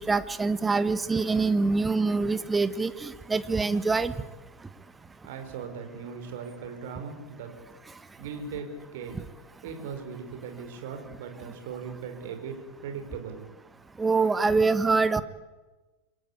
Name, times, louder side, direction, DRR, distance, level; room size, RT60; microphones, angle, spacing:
voice 1, 0.0-4.1 14.0-15.2, right 4 dB, 10° right, 14 dB, 1.4 m, -25 dB
voice 2, 5.2-7.6 8.2-9.2 9.6-12.6 12.8-13.4, right 6 dB, 55° right, 6 dB, 5.4 m, -38 dB
28.0 x 23.5 x 8.7 m, 1.2 s
figure-of-eight pair, 90°, 0 cm